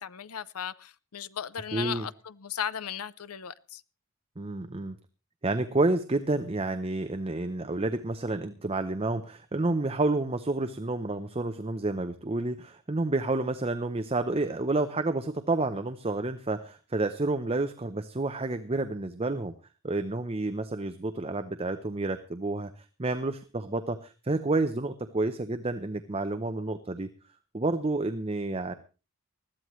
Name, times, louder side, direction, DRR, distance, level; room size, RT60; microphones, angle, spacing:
voice 1, 0.0-3.8, left 8 dB, 85° left, 0.6 m, -36 dB
voice 2, 1.7-2.1 4.4-5.0 5.4-19.5 19.8-22.7 23.0-27.1 27.5-28.7, right 2 dB, 25° right, 0.7 m, -29 dB
20.5 x 14.0 x 3.1 m
head